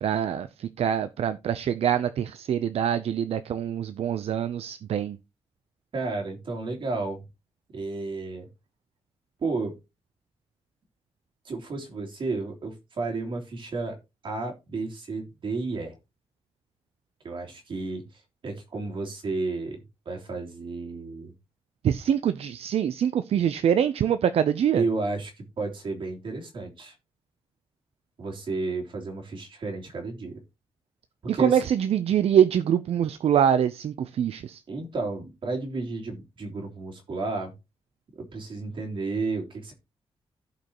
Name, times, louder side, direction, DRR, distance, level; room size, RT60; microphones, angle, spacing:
voice 1, 0.0-5.2 21.8-24.8 31.3-34.6, right 9 dB, 75° right, 0.6 m, -24 dB
voice 2, 5.9-7.2 7.7-8.5 9.4-9.7 11.4-14.0 14.2-15.9 17.2-19.8 20.0-21.3 24.7-26.9 28.2-30.3 31.3-31.6 34.7-37.5 38.1-39.7, right 3 dB, 55° right, 3.3 m, -32 dB
16.0 x 5.4 x 3.0 m
wide cardioid pair, 165°, 10 cm